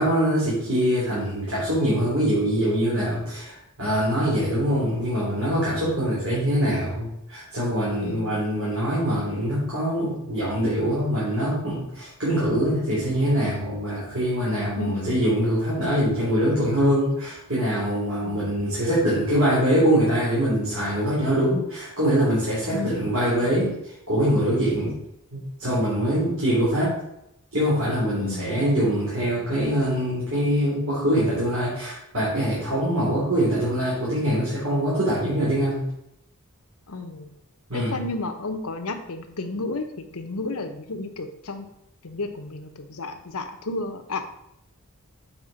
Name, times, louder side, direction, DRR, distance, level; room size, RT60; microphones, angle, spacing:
voice 1, 0.0-25.0 25.3-27.0 27.5-35.9 37.7-38.0, equal, 70° right, -8 dB, 3.1 m, -23 dB
voice 2, 8.0-8.5 14.8-15.2 18.2-18.7 22.7-23.2 26.2-26.4 28.2-28.7 36.9-37.3 37.7-41.7 42.0-44.2, left 2 dB, 75° left, 6 dB, 0.9 m, -32 dB
7.4 x 4.8 x 5.0 m, 0.79 s
head